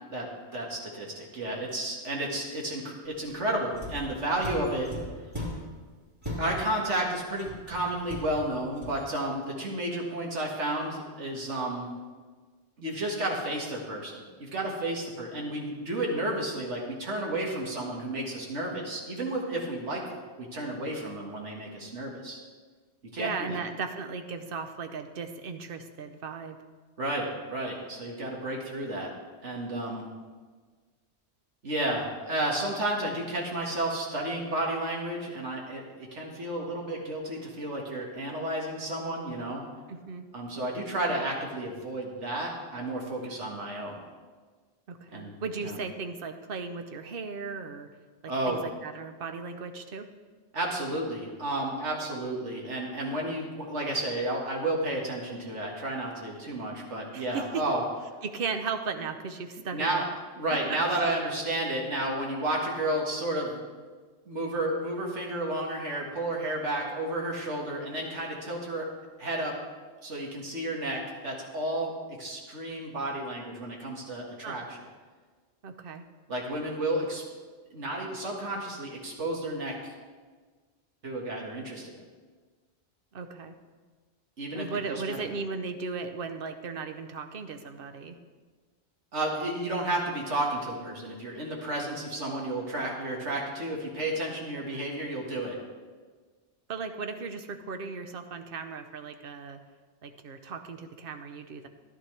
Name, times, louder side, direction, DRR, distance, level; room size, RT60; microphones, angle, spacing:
voice 1, 0.1-4.9 6.4-11.9 12.8-22.4 23.1-23.6 27.0-29.1 29.4-30.1 31.6-39.7 40.3-44.0 45.1-45.8 48.3-48.6 50.5-57.8 59.7-60.0 60.4-63.6 64.3-68.9 69.2-69.6 70.0-71.9 72.2-74.8 76.3-77.2 77.7-79.9 81.0-81.9 84.4-85.2 89.1-95.6, right 1 dB, 90° right, -1 dB, 2.1 m, -32 dB
sound 1, 3.7-5.8 6.2-6.9 7.3-9.1, left 1 dB, 25° right, 4.0 m, -39 dB
voice 2, 23.2-26.6 39.9-40.2 44.9-47.9 48.2-50.1 57.1-57.6 58.2-60.1 60.5-61.1 74.4-74.6 75.6-76.0 83.1-83.5 84.5-88.2 96.7-99.6 100.0-101.7, right 5 dB, 55° right, 7 dB, 1.0 m, -36 dB
14.0 x 11.0 x 3.3 m, 1.4 s
omnidirectional pair, 1.2 m